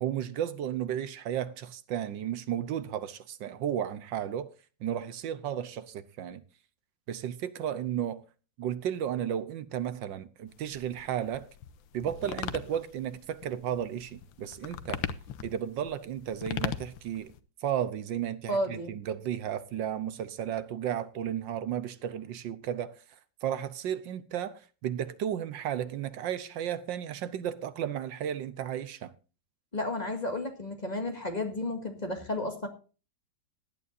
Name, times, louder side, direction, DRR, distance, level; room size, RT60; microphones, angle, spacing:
voice 1, 0.0-4.5 4.8-6.4 7.1-8.2 8.6-11.5 11.9-15.0 15.4-17.3 17.6-23.0 23.4-29.1, right 10 dB, 75° right, 1.5 m, -33 dB
sound 1, 10.5-17.4, left 9 dB, 85° left, 1.6 m, -39 dB
voice 2, 18.5-19.0 29.7-32.7, left 1 dB, 20° left, 2.0 m, -32 dB
18.0 x 11.0 x 2.7 m
omnidirectional pair, 2.1 m